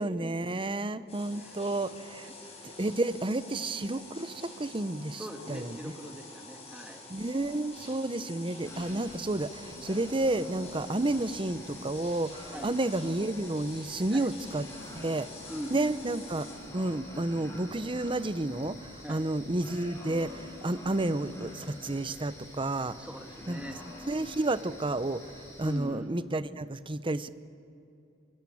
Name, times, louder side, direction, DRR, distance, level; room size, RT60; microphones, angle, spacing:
voice 1, 0.0-2.3 2.6-5.9 7.1-14.7 14.9-15.3 15.7-16.5 16.7-23.0 23.5-23.6 24.0-25.3 25.6-27.3, right 2 dB, 25° right, 14 dB, 0.8 m, -31 dB
sound 1, 1.1-16.6, left 2 dB, 35° left, 8.0 m, -48 dB
voice 2, 5.2-7.0 12.5-12.7 14.1-14.3 15.5-16.0 19.0-19.2 23.0-23.8 25.6-26.1, equal, 5° right, 4 dB, 2.2 m, -41 dB
sound 2, 8.6-25.8, left 2 dB, 15° left, 6.7 m, -46 dB
24.5 x 24.0 x 8.6 m, 2.7 s
head